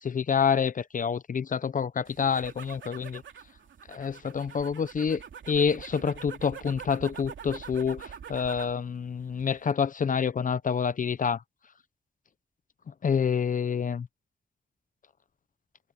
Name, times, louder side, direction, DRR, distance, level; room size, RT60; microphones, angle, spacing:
voice 1, 0.0-3.2 3.9-11.4 12.9-14.1, left 6 dB, 45° left, 0.5 m, -28 dB
sound 1, 2.1-8.8 9.2-9.7, right 7 dB, 85° right, 2.9 m, -44 dB
wide cardioid pair, 120°, 19 cm